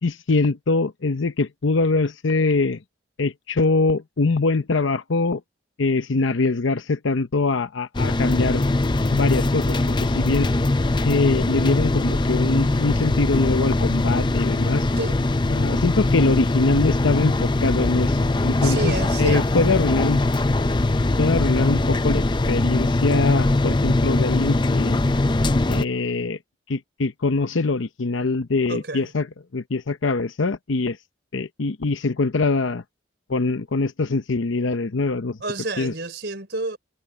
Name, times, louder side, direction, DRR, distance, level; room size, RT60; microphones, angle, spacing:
voice 1, 0.0-2.8 3.2-5.4 5.8-8.7 9.1-10.5 11.0-14.9 15.5-20.2 21.2-25.0 25.7-26.4 26.7-29.3 29.5-31.0 31.3-32.8 33.3-35.4 35.8-35.9, left 3 dB, 80° left, 0.8 m, -23 dB
sound 1, 7.9-25.8, left 2 dB, 25° left, 0.5 m, -21 dB
voice 2, 18.6-19.7 28.7-29.1 35.4-36.8, right 2 dB, 55° right, 4.8 m, -29 dB
head